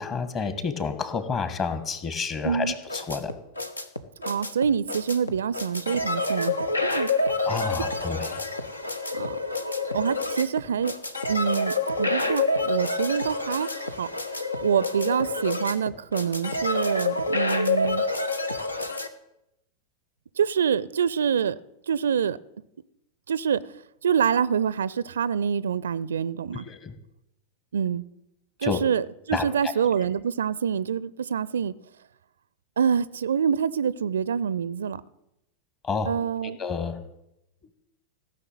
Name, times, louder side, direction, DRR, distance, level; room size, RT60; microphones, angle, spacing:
voice 1, 0.0-3.3 7.4-8.5 26.5-26.9 28.6-28.8 29.3-29.7 35.8-36.1 36.4-37.0, left 5 dB, 30° left, 11 dB, 1.6 m, -30 dB
voice 2, 2.4-2.7 4.3-7.3 9.1-9.4 9.9-10.9 11.3-14.1 14.6-18.0 20.4-21.6 21.9-22.4 23.3-23.6 24.0-26.7 27.7-28.0 28.6-31.7 32.8-35.0 36.1-36.6, right 7 dB, 65° right, 20 dB, 0.4 m, -26 dB
sound 1, 2.6-19.1, left 3 dB, 80° left, 1.0 m, -28 dB
16.0 x 6.5 x 9.0 m, 0.85 s
figure-of-eight pair, 90°, 0 cm